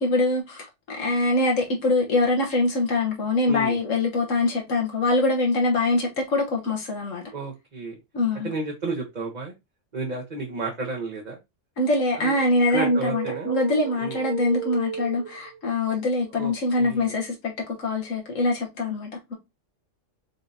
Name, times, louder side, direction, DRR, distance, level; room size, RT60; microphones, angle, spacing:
voice 1, 0.0-7.2 8.1-8.5 11.8-17.5 17.8-19.3, left 2 dB, 85° left, 1.5 m, -24 dB
voice 2, 3.5-3.8 7.3-7.9 8.4-9.5 9.9-11.4 12.1-12.3 12.7-13.5 14.0-14.2 16.3-16.5 16.8-17.1, right 3 dB, 35° right, 1.0 m, -31 dB
sound 1, 12.1-15.7, right 8 dB, 60° right, 0.8 m, -35 dB
5.3 x 3.7 x 2.7 m
omnidirectional pair, 1.3 m